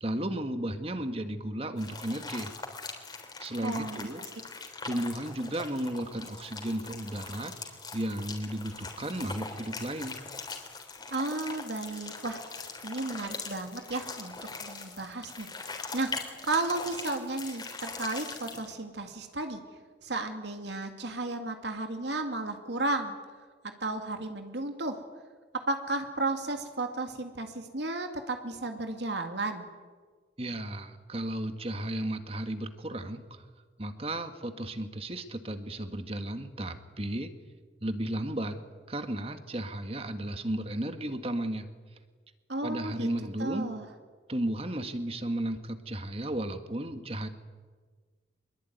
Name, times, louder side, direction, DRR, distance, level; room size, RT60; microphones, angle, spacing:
voice 1, 0.0-2.5 3.4-4.2 4.8-7.5 7.9-10.2 30.4-33.2 33.8-37.3 37.8-38.6 38.9-41.7 42.6-43.7 44.3-47.3, right 1 dB, 30° right, 8 dB, 1.7 m, -34 dB
sound 1, 1.8-18.7, left 4 dB, 25° left, 3.5 m, -42 dB
voice 2, 3.6-4.3 11.1-12.4 12.8-14.3 14.6-15.5 15.9-16.1 16.4-19.6 20.0-23.2 23.8-25.0 25.7-29.7 42.5-43.1 43.4-43.9, right 2 dB, 75° right, 5 dB, 2.3 m, -33 dB
24.5 x 21.5 x 9.4 m, 1.5 s
head